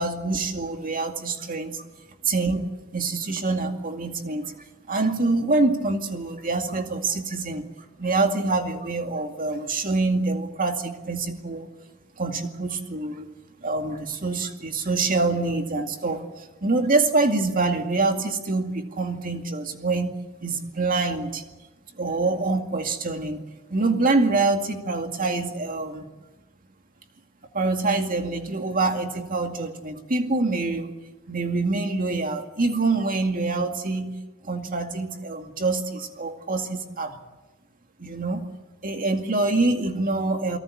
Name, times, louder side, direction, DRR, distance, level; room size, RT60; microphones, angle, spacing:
voice 1, 0.0-1.8 2.2-4.5 4.9-7.7 8.0-11.7 12.2-13.2 13.6-20.2 20.4-21.4 22.0-23.4 23.7-26.1 27.5-30.9 31.3-34.2 34.4-37.2 38.0-38.5 38.8-40.6, right 3 dB, 40° right, 5 dB, 2.2 m, -25 dB
29.0 x 18.5 x 8.6 m, 1.2 s
head